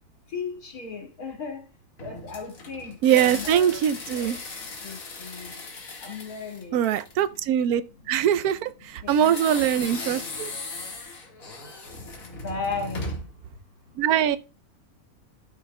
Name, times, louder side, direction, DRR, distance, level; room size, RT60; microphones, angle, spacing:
voice 1, 0.3-1.7 2.0-5.6 6.0-8.2 8.6-9.4 9.8-10.6 12.3-13.3, left 4 dB, 90° left, 2.8 m, -37 dB
sound 1, 2.0-7.4 9.1-13.4, left 2 dB, 70° left, 2.1 m, -38 dB
voice 2, 3.0-4.4 6.7-7.8 8.1-8.7 9.1-10.5 14.0-14.4, right 10 dB, 85° right, 1.1 m, -22 dB
13.0 x 6.5 x 2.2 m
omnidirectional pair, 1.5 m